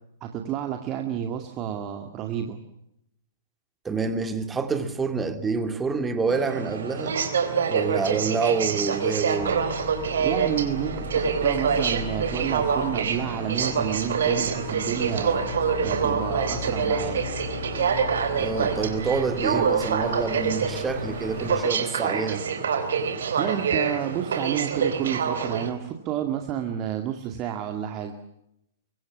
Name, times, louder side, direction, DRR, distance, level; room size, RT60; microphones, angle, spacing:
voice 1, 0.2-2.6 10.2-15.4 15.8-17.2 23.4-28.1, right 10 dB, 25° right, 2.2 m, -30 dB
voice 2, 3.8-7.2 7.7-9.6 18.4-22.5, right 4 dB, 10° right, 2.4 m, -27 dB
Aircraft, 6.3-25.7, right 6 dB, 55° right, 3.8 m, -26 dB
sound 1, 9.4-21.6, left 7 dB, 35° left, 4.8 m, -37 dB
24.0 x 24.0 x 7.4 m
figure-of-eight pair, 110°, 0 cm